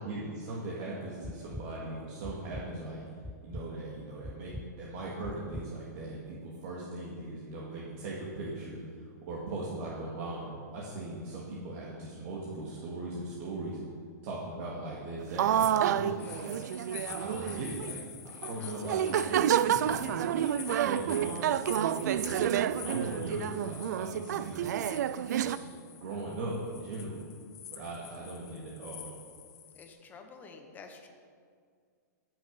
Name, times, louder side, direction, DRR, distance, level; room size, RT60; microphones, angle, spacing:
voice 1, 0.0-3.0 3.4-13.8 14.2-16.5 17.0-24.9 25.4-25.6 25.9-27.2 27.7-29.1, right 2 dB, 45° right, -5 dB, 2.2 m, -39 dB
sound 1, 1.2-1.6 2.2-2.6 3.2-3.6 4.2-4.6 5.2-5.6, left 1 dB, ahead, 0.4 m, -41 dB
sound 2, 15.4-17.9 18.4-18.6 18.8-25.6, right 10 dB, 65° right, 0.4 m, -29 dB
sound 3, 16.2-29.9, left 9 dB, 60° left, 1.6 m, -47 dB
voice 2, 16.2-17.1 18.5-18.9 29.7-31.1, left 4 dB, 20° left, 4 dB, 1.2 m, -51 dB
15.5 x 6.5 x 5.4 m, 2.1 s
hypercardioid pair, 145°, 10 cm